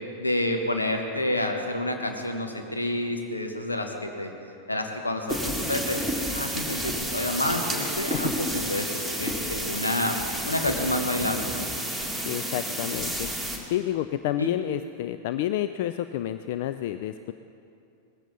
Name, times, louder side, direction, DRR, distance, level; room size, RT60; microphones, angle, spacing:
voice 1, 0.2-4.3 4.7-6.0 6.3-11.7 14.4-14.5, left 1 dB, 80° left, 4 dB, 1.5 m, -29 dB
sound 1, 5.3-13.6, right 1 dB, 5° left, 2.1 m, -30 dB
voice 2, 7.8-8.3 12.3-13.3 13.7-17.3, left 12 dB, 50° left, 11 dB, 0.4 m, -29 dB
20.0 x 15.0 x 4.1 m, 2.6 s
figure-of-eight pair, 90°, 0 cm